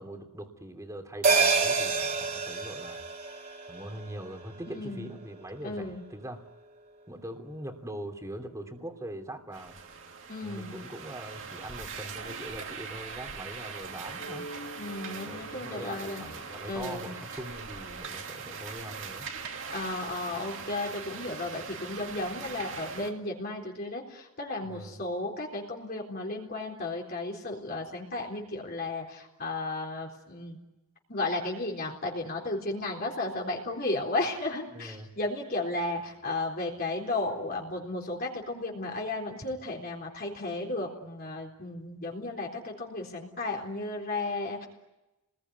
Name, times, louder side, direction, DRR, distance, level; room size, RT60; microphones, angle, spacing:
voice 1, 0.0-3.0 3.7-6.4 7.1-9.7 10.4-14.5 15.3-19.3 24.6-25.0 34.7-35.1, right 1 dB, 15° right, 5 dB, 3.0 m, -42 dB
sound 1, 1.2-6.0 6.3-6.4, right 4 dB, 40° right, 3.6 m, -29 dB
voice 2, 4.7-5.1 5.6-6.0 10.3-10.8 14.8-16.2 16.7-17.1 19.7-30.6 31.1-44.7, left 2 dB, 40° left, -1 dB, 3.8 m, -34 dB
sound 2, 9.5-23.1, right 5 dB, 60° right, 2.8 m, -41 dB
sound 3, 14.2-19.1, right 1 dB, 70° left, 4.2 m, -48 dB
30.0 x 21.0 x 9.6 m, 1.0 s
head